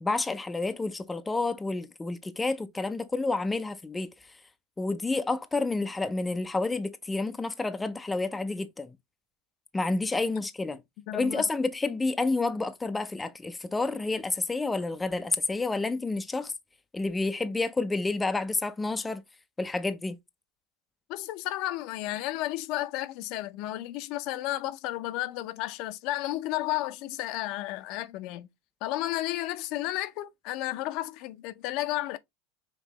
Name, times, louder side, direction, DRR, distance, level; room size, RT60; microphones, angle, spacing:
voice 1, 0.0-4.1 4.8-9.0 9.7-10.8 11.1-16.5 16.9-19.2 19.6-20.2, left 3 dB, 10° left, 0.4 m, -29 dB
voice 2, 11.1-11.4 21.1-28.5 28.8-32.2, left 16 dB, 55° left, 0.6 m, -32 dB
5.3 x 3.0 x 2.8 m
supercardioid pair, 130°, 0 cm